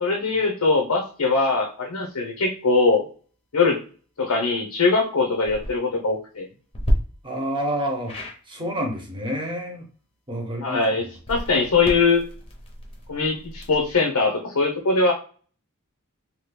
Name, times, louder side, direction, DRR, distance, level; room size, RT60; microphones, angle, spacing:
voice 1, 0.0-3.0 3.5-3.8 4.2-6.5 10.6-12.2 13.1-15.1, left 3 dB, 90° left, 0 dB, 0.7 m, -21 dB
sound 1, 5.3-5.7 6.7-6.9 8.1-8.4 11.1-13.9, equal, 25° left, 0.7 m, -29 dB
voice 2, 7.2-8.1 8.5-9.8 10.3-10.8, equal, 20° right, 2 dB, 0.8 m, -28 dB
2.9 x 2.3 x 3.3 m, 0.39 s
head